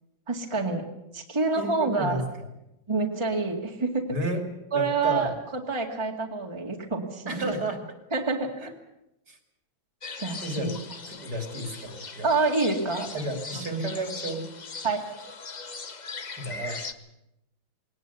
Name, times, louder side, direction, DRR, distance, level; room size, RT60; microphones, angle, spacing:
voice 1, 0.3-0.9 1.1-2.2 2.9-4.1 4.7-7.5 8.1-8.5 10.2-10.8 12.2-13.1 13.5-13.7 14.8-15.1, right 3 dB, 15° right, 1 dB, 2.0 m, -27 dB
voice 2, 1.6-2.2 4.1-4.4 4.7-5.4 7.3-7.8 8.6-8.7 9.3-9.4 10.4-10.7 11.1-12.3 13.1-14.4 16.4-16.8, right 2 dB, 55° right, 5 dB, 3.5 m, -31 dB
sound 1, 10.0-16.9, left 4 dB, 35° left, 0.7 m, -40 dB
20.5 x 18.5 x 8.2 m, 0.87 s
omnidirectional pair, 2.1 m